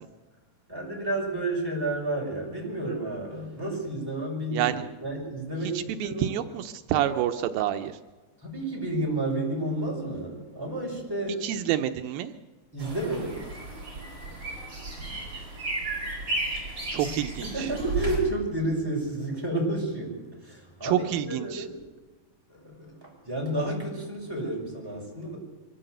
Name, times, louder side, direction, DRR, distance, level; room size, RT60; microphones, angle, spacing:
voice 1, 0.7-6.4 8.4-11.4 12.7-13.5 17.0-17.1 17.5-21.8 22.5-25.4, right 1 dB, 5° right, -2 dB, 6.0 m, -31 dB
voice 2, 4.5-4.8 5.7-8.0 11.4-12.3 16.9-17.7 20.8-21.7, right 11 dB, 85° right, 8 dB, 2.5 m, -28 dB
sound 1, 12.8-18.2, right 2 dB, 35° right, 7.5 m, -34 dB
23.5 x 15.5 x 7.9 m, 1.2 s
omnidirectional pair, 4.1 m